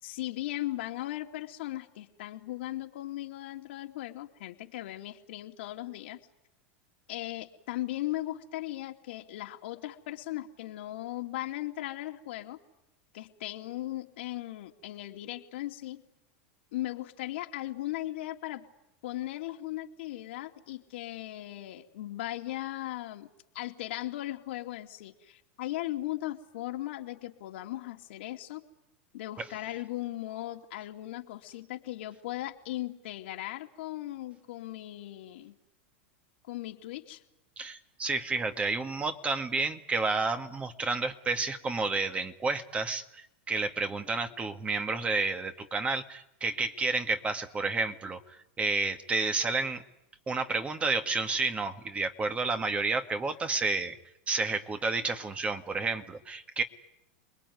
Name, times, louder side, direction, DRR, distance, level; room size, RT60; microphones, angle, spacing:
voice 1, 0.0-6.2 7.1-12.6 13.1-16.0 16.7-18.7 19.0-23.3 23.5-28.6 29.1-35.5 36.5-37.2, left 15 dB, 70° left, 4 dB, 2.7 m, -38 dB
voice 2, 37.6-49.8 50.3-54.0 54.3-56.6, right 3 dB, 20° right, 7 dB, 2.0 m, -30 dB
29.0 x 21.0 x 9.6 m, 0.86 s
hypercardioid pair, 115°, 6 cm